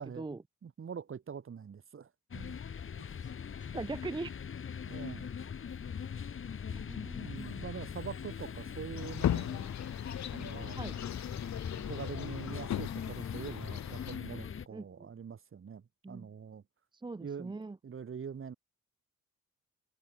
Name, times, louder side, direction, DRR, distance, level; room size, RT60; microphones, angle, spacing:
voice 1, 0.6-2.6 4.9-5.3 7.2-9.7 10.3-11.2 11.7-16.6 17.2-17.6 17.8-18.5, right 7 dB, 45° right, 3.9 m, -44 dB
sound 1, 2.3-14.7, left 7 dB, 45° left, 2.2 m, -41 dB
voice 2, 3.6-4.3 6.7-7.3 10.7-11.0 14.7-15.1 16.0-16.3 17.0-17.8, right 3 dB, 15° right, 0.9 m, -41 dB
sound 2, 9.0-14.2, left 11 dB, 65° left, 1.8 m, -37 dB
cardioid pair, 90°, 30 cm